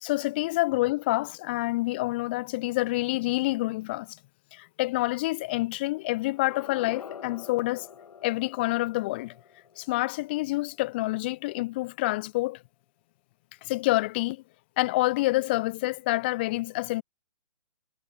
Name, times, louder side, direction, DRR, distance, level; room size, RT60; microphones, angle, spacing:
voice 1, 0.0-4.2 4.5-7.9 8.2-9.3 9.8-12.6 13.6-14.4 14.8-17.0, left 20 dB, 15° left, 0.7 m, -27 dB
sound 1, 6.2-11.2, left 7 dB, 70° left, 6.0 m, -47 dB
hypercardioid pair, 175°, 20 cm